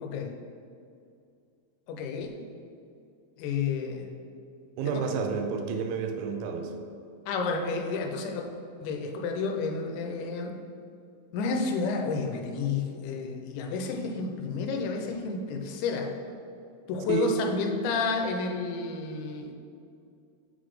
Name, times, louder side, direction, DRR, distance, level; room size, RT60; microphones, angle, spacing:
voice 1, 0.0-0.3 1.9-2.3 3.4-4.1 4.9-5.0 7.3-8.4 8.8-10.6 11.3-16.1 16.9-19.5, left 4 dB, 85° left, 2 dB, 3.0 m, -30 dB
voice 2, 4.8-6.7 17.1-17.3, right 6 dB, 85° right, 5 dB, 3.0 m, -30 dB
7.8 x 4.0 x 4.8 m, 2.4 s
omnidirectional pair, 5.3 m